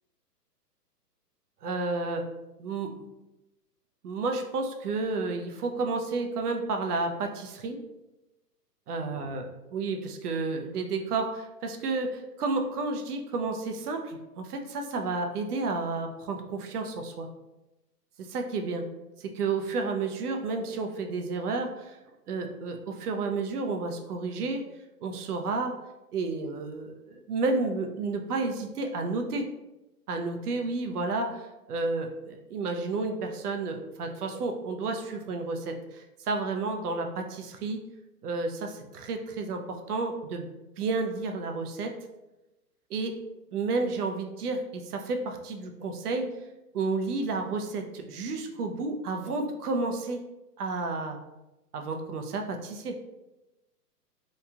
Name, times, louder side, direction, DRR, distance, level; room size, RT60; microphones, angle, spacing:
voice 1, 1.6-2.2 2.6-2.9 4.0-7.8 8.9-17.3 18.2-18.9 19.2-22.0 22.3-24.7 25.0-25.8 26.1-29.5 30.1-37.8 38.2-40.5 40.8-41.9 42.9-43.2 43.5-46.3 46.7-50.3 50.6-51.2 51.7-53.0, right 3 dB, 65° right, 4 dB, 0.6 m, -31 dB
3.0 x 2.3 x 2.3 m, 0.99 s
hypercardioid pair, 145°, 49 cm